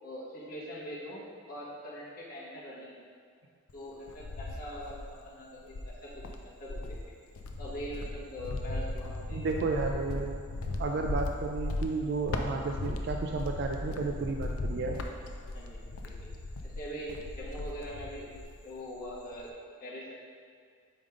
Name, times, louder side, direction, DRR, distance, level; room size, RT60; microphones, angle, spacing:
voice 1, 0.0-3.1 3.7-7.0 7.6-9.9 15.5-16.3 16.6-18.3 18.6-19.5 19.8-20.1, equal, 40° left, -7 dB, 1.3 m, -43 dB
Cricket, 3.7-5.2 5.7-18.6 18.9-19.5, left 2 dB, 75° left, 0.5 m, -37 dB
voice 2, 9.3-10.5 10.8-15.0, right 3 dB, 50° right, 2 dB, 0.3 m, -32 dB
5.2 x 5.1 x 3.6 m, 2.1 s
head